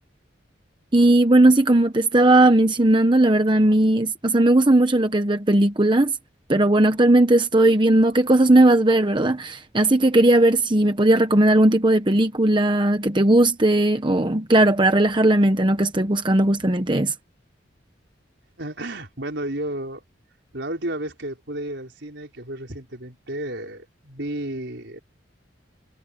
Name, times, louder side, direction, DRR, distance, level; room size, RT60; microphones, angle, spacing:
voice 1, 0.9-6.1 6.5-17.1, right 1 dB, 25° right, 1.0 m, -17 dB
voice 2, 18.6-20.0 20.5-25.0, right 1 dB, 70° right, 4.7 m, -32 dB
head